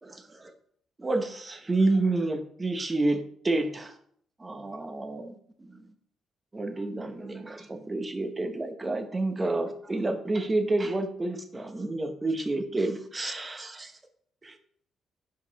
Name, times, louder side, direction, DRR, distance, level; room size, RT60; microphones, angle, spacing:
voice 1, 1.0-3.2 3.4-3.9 4.4-5.3 5.6-5.8 6.5-13.9 14.4-14.5, right 2 dB, 20° right, 6 dB, 1.0 m, -29 dB
5.4 x 4.8 x 4.1 m, 0.63 s
cardioid pair, 90°, 0 cm